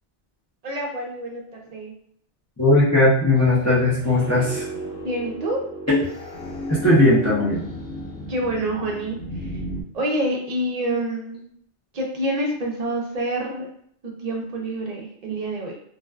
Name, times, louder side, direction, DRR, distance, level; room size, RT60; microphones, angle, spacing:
voice 1, 0.6-1.9 4.2-4.3 5.0-5.6 8.3-9.6 9.9-11.5 11.9-13.7 14.2-15.8, right 1 dB, 50° right, 0 dB, 0.5 m, -27 dB
voice 2, 2.6-4.6 5.9-6.0 6.7-7.6, left 1 dB, 20° left, -7 dB, 0.4 m, -18 dB
sound 1, 3.4-9.8, equal, 75° left, 0.9 m, -34 dB
2.5 x 2.2 x 2.3 m, 0.66 s
omnidirectional pair, 1.1 m